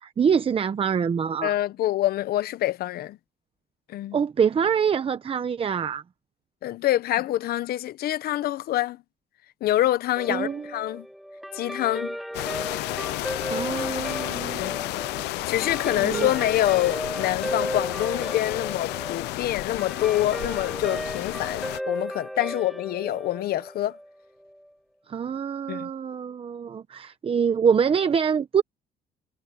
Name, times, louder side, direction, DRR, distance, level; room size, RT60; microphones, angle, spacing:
voice 1, 0.0-1.6 4.1-6.0 10.3-10.7 13.5-15.0 16.0-16.3 25.1-28.6, right 7 dB, 35° right, 0.9 m, -25 dB
voice 2, 1.4-3.2 3.9-4.2 6.6-9.0 9.6-11.1 11.5-12.2 12.9-13.0 14.6-14.8 15.2-24.0 25.7-25.9, left 14 dB, 65° left, 0.9 m, -26 dB
Guitar, 10.2-24.7, equal, ahead, 1.1 m, -35 dB
sound 1, 12.3-21.8, left 20 dB, 90° left, 0.5 m, -32 dB
cardioid pair, 110°, 17 cm